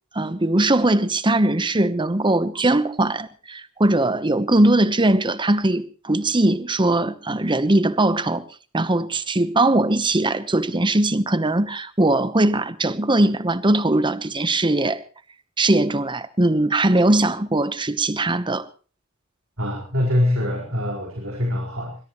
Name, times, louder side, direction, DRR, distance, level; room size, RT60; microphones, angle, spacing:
voice 1, 0.1-8.4 8.7-15.0 15.6-18.7, right 2 dB, 20° right, 1.0 m, -20 dB
voice 2, 19.6-22.0, left 1 dB, 70° right, 4.4 m, -24 dB
21.5 x 21.5 x 3.1 m
head